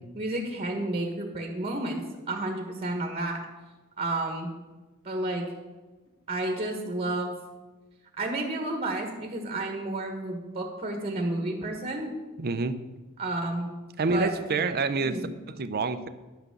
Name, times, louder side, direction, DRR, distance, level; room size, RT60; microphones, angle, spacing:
voice 1, 0.1-2.0 2.3-3.4 4.0-4.5 5.0-5.4 6.3-7.4 8.2-12.1 13.2-13.7 14.1-14.3 15.0-15.2, right 2 dB, 30° right, 3 dB, 1.4 m, -31 dB
voice 2, 12.4-12.8 14.0-15.2 15.5-16.1, right 4 dB, 45° right, 11 dB, 0.6 m, -27 dB
11.0 x 6.1 x 6.7 m, 1.2 s
head